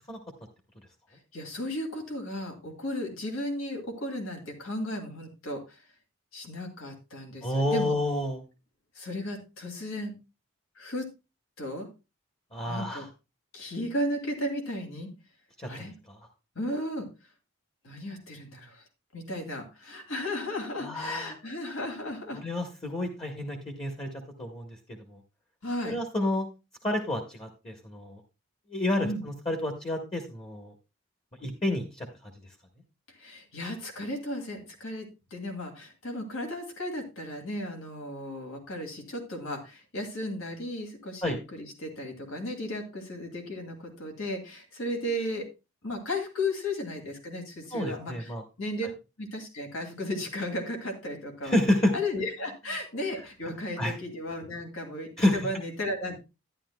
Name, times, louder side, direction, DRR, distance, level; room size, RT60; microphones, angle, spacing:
voice 1, 1.3-5.8 6.3-8.0 9.0-10.2 10.8-11.1 11.6-11.9 12.7-13.1 13.5-15.1 15.7-15.9 16.6-17.1 17.8-18.8 19.1-22.4 25.6-26.0 29.0-29.2 33.2-45.5 45.8-48.3 48.6-48.9 49.2-51.6 51.9-56.2, left 1 dB, 80° left, 3 dB, 2.3 m, -35 dB
voice 2, 7.4-8.4 12.5-13.1 15.6-15.7 16.1-16.2 20.8-21.3 22.3-24.1 24.4-25.2 25.8-26.5 26.8-28.2 28.7-30.7 31.4-32.3 41.2-41.4 47.7-48.4 51.4-51.9 53.8-53.9 55.2-55.4, left 1 dB, 25° left, 4 dB, 1.1 m, -29 dB
11.5 x 10.5 x 2.3 m, 0.27 s
head